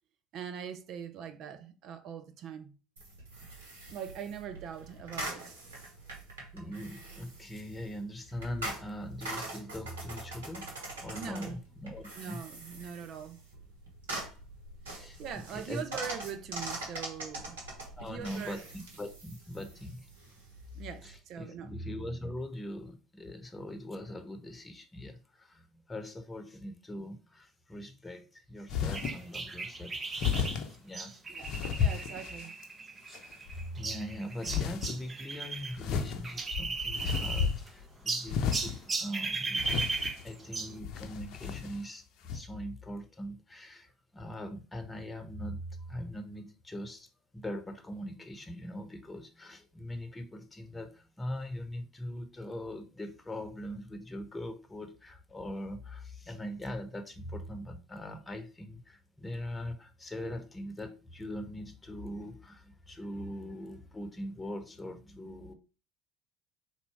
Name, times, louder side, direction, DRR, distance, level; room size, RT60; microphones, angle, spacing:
voice 1, 0.3-2.8 3.9-5.6 11.1-11.6 12.2-13.4 15.2-17.6 18.0-18.7 20.7-21.7 31.3-32.5, right 8 dB, 60° right, 0.5 m, -42 dB
sound 1, 3.0-21.2, right 2 dB, 85° right, 1.3 m, -43 dB
voice 2, 6.5-10.7 11.0-12.4 14.9-15.2 15.5-15.8 18.0-18.6 19.0-20.1 21.0-30.0 30.7-31.2 31.6-32.1 33.5-42.0 42.3-47.1 47.3-65.5, equal, 20° left, 1.0 m, -41 dB
sound 2, 28.7-29.2 30.2-30.7 31.4-32.6 33.1-33.6 34.5-35.0 35.8-37.8 38.3-38.8 39.6-40.3 40.8-41.8 42.3-42.4, left 7 dB, 60° left, 0.7 m, -32 dB
sound 3, 28.9-35.8 36.0-37.7 38.1-40.8, right 3 dB, 30° right, 0.8 m, -36 dB
4.0 x 2.7 x 4.7 m
hypercardioid pair, 65°, 0 cm